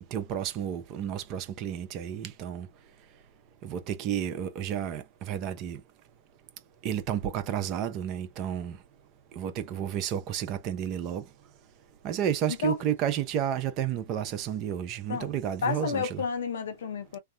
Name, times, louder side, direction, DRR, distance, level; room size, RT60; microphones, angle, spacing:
voice 1, 0.1-2.7 3.6-5.8 6.8-8.8 9.4-11.2 12.0-16.2, right 9 dB, 40° right, 0.8 m, -31 dB
voice 2, 15.6-17.2, left 6 dB, 75° left, 0.8 m, -31 dB
3.4 x 2.1 x 2.7 m
hypercardioid pair, 120°, 0 cm